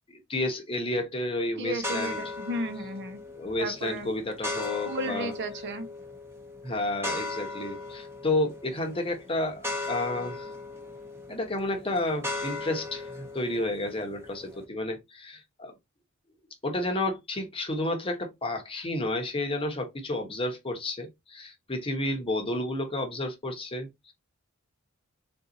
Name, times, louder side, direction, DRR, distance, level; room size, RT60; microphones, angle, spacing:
voice 1, 0.1-2.2 3.4-5.3 6.6-10.5 11.3-15.7 16.6-24.1, left 1 dB, 25° left, 1.0 m, -31 dB
voice 2, 1.6-3.2 3.6-4.1 4.8-5.9, right 1 dB, 55° right, 0.9 m, -34 dB
sound 1, 1.8-14.6, left 2 dB, 10° right, 0.9 m, -38 dB
3.9 x 2.6 x 3.9 m
head